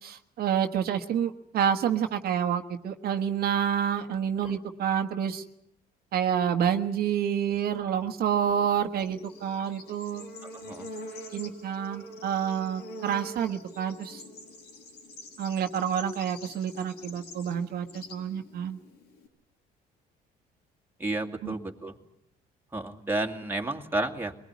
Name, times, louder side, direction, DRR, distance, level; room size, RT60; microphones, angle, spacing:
voice 1, 0.0-5.4 6.1-10.2 11.3-14.2 15.4-18.8 21.4-21.5, right 8 dB, 65° right, 6 dB, 1.4 m, -28 dB
Bird / Insect, 8.7-19.3, left 1 dB, 80° left, 6.6 m, -45 dB
voice 2, 10.4-10.9 21.0-22.0 22.7-24.4, right 2 dB, 10° right, 3 dB, 2.2 m, -32 dB
23.0 x 19.5 x 9.5 m, 0.75 s
cardioid pair, 110°, 17 cm